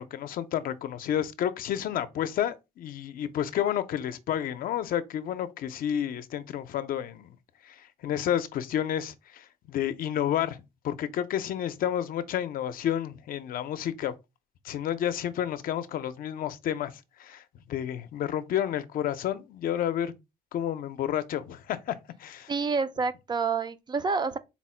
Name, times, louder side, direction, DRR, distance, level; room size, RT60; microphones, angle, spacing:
voice 1, 0.0-7.4 7.6-10.6 10.8-14.1 14.6-16.9 17.2-17.4 17.7-20.1 20.5-22.5, left 10 dB, 55° left, 0.5 m, -30 dB
voice 2, 22.5-24.4, right 4 dB, 25° right, 0.3 m, -28 dB
4.2 x 2.0 x 4.3 m
cardioid pair, 110°, 17 cm